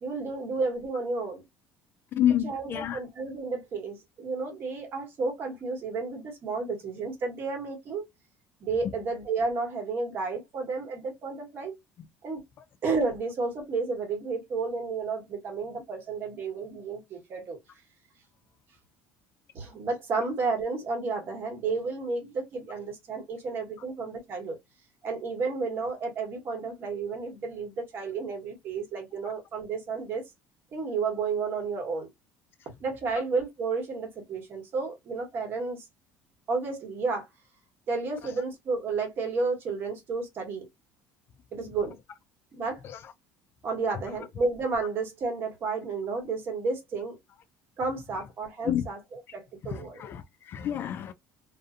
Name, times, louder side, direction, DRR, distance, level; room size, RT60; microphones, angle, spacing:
voice 1, 0.0-1.4 2.4-8.0 8.6-11.8 12.2-12.4 12.8-17.6 19.5-24.6 25.0-30.2 30.7-32.1 32.8-35.8 36.5-37.3 37.9-40.7 41.5-42.0 42.5-42.8 43.6-47.2 47.8-49.0 49.3-50.0, right 4 dB, 45° right, 1.3 m, -31 dB
voice 2, 2.1-3.0 12.6-12.7 29.2-29.3 38.2-38.3 42.8-43.1 48.6-48.9 49.6-51.1, left 10 dB, 45° left, 0.3 m, -29 dB
2.5 x 2.4 x 2.5 m
cardioid pair, 130°, 5 cm